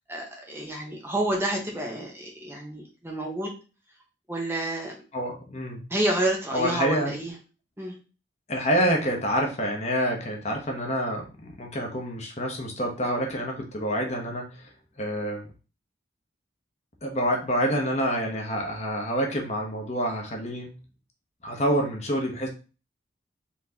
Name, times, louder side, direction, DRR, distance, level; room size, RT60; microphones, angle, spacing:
voice 1, 0.1-3.5 4.3-4.9 5.9-7.3 7.8-7.9, right 1 dB, 15° right, -1 dB, 1.0 m, -29 dB
voice 2, 5.1-5.8 6.5-7.1 8.5-14.7 15.0-15.5 17.0-20.8 21.4-22.5, equal, 40° left, 1 dB, 1.0 m, -27 dB
4.4 x 3.7 x 2.8 m, 0.33 s
head